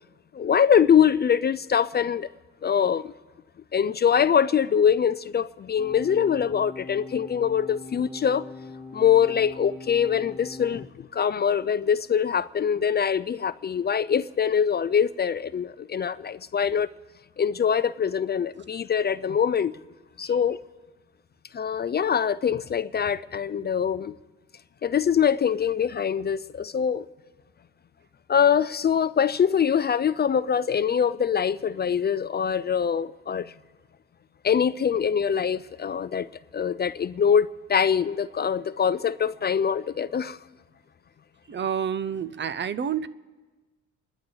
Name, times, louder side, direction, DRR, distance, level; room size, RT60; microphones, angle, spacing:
voice 1, 0.3-2.3 2.6-3.1 3.7-8.5 8.9-16.9 17.4-19.7 20.2-20.6 21.5-24.1 24.8-27.1 28.3-33.5 34.4-40.4, left 7 dB, 35° left, 0.4 m, -23 dB
sound 1, 5.8-10.8, left 4 dB, ahead, 1.7 m, -42 dB
voice 2, 41.5-43.1, right 8 dB, 40° right, 0.6 m, -29 dB
28.5 x 11.5 x 4.0 m
cardioid pair, 90°, 30 cm